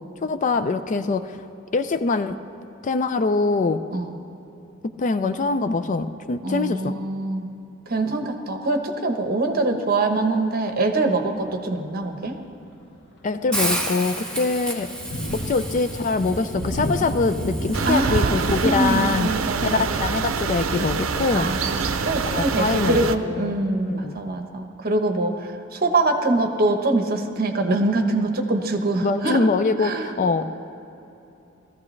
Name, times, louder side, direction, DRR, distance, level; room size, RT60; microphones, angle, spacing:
voice 1, 0.2-1.4 1.7-2.3 2.8-3.8 5.0-6.9 13.2-14.9 15.3-19.3 19.6-21.5 22.2-23.0 23.3-24.2 29.0-30.4, left 3 dB, 40° left, 10 dB, 0.4 m, -23 dB
voice 2, 6.4-7.5 7.9-12.4 17.8-20.0 21.3-29.4 29.8-30.1, right 2 dB, 45° right, 5 dB, 1.0 m, -24 dB
Thunder, 11.2-11.6 12.1-12.3 12.7-23.3, equal, 60° left, 1.3 m, -35 dB
Hiss, 13.5-19.6, right 1 dB, 5° left, 1.3 m, -32 dB
sound 1, 17.7-23.2, right 5 dB, 80° right, 0.6 m, -25 dB
17.5 x 14.5 x 3.2 m, 3.0 s
head